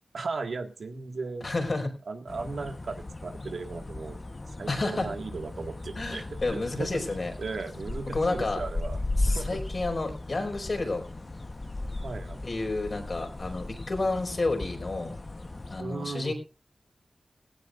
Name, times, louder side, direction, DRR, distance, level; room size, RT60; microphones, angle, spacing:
voice 1, 0.1-1.5 2.1-4.2 4.5-9.0 9.3-9.6 12.0-12.4 15.8-16.3, right 4 dB, 90° right, 5 dB, 1.9 m, -36 dB
voice 2, 1.4-1.9 4.7-5.1 6.0-7.3 8.1-8.6 9.2-11.1 12.4-15.2 15.7-16.3, left 2 dB, 55° left, 4 dB, 5.1 m, -30 dB
sound 1, 2.3-15.8, left 2 dB, 40° left, 1.1 m, -36 dB
17.5 x 17.0 x 2.6 m, 0.32 s
wide cardioid pair, 60°, 0 cm